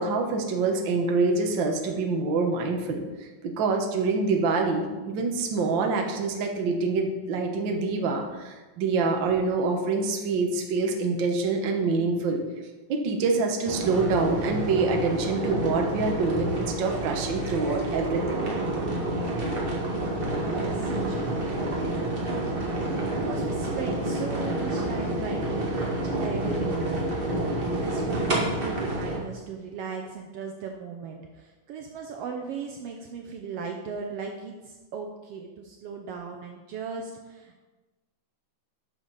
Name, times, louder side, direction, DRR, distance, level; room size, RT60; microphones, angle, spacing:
voice 1, 0.0-12.4 12.9-18.4, right 4 dB, 70° right, 3 dB, 1.1 m, -26 dB
sound 1, 13.7-29.2, right 1 dB, 25° right, 1.2 m, -29 dB
voice 2, 19.8-37.6, right 5 dB, 90° right, 3 dB, 1.3 m, -38 dB
11.0 x 6.5 x 4.0 m, 1.2 s
omnidirectional pair, 3.6 m